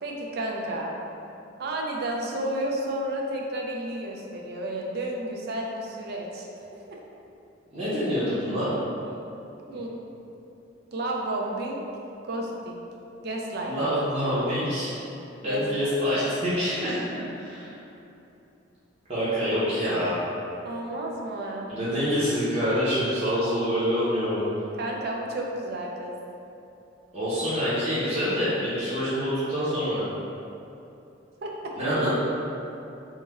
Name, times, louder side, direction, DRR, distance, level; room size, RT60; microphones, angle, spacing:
voice 1, 0.0-0.9 1.6-6.5 6.9-7.0 9.7-9.9 10.9-11.8 12.2-12.8 13.2-13.7 15.4-15.9 20.6-21.7 24.8-26.1 31.4-31.7, right 1 dB, 55° right, -1 dB, 0.4 m, -31 dB
voice 2, 7.7-8.7 9.0-9.1 9.7-9.8 13.6-14.9 15.4-17.7 19.1-20.2 21.7-24.5 27.1-30.0 31.8-32.1, equal, 35° right, -13 dB, 0.7 m, -26 dB
3.1 x 2.2 x 3.4 m, 2.8 s
head